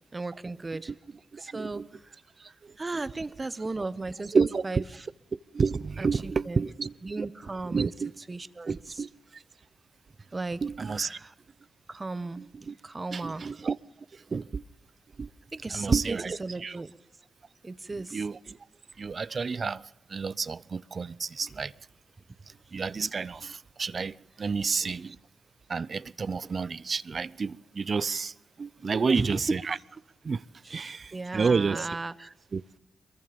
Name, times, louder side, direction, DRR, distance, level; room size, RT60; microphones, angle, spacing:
voice 1, 0.1-0.9 1.4-2.2 2.8-5.0 6.0-6.6 7.0-7.9 8.3-9.0 10.3-11.3 11.9-12.4 12.8-13.5 15.5-16.9 17.6-18.2 28.9-29.4 30.6-32.3, right 3 dB, 30° right, 1.4 m, -36 dB
voice 2, 1.3-1.9 2.4-2.7 4.3-4.8 5.5-7.3 7.7-8.1 8.7-9.4 10.6-11.2 12.4-12.7 13.1-13.8 14.3-14.6 15.2-15.3 15.7-16.8 18.1-18.6 19.0-21.7 22.7-25.2 25.7-29.8 30.2-30.4 30.7-32.0 32.5-32.8, right 5 dB, 50° right, 0.7 m, -30 dB
23.0 x 22.0 x 5.4 m
supercardioid pair, 55°, 0 cm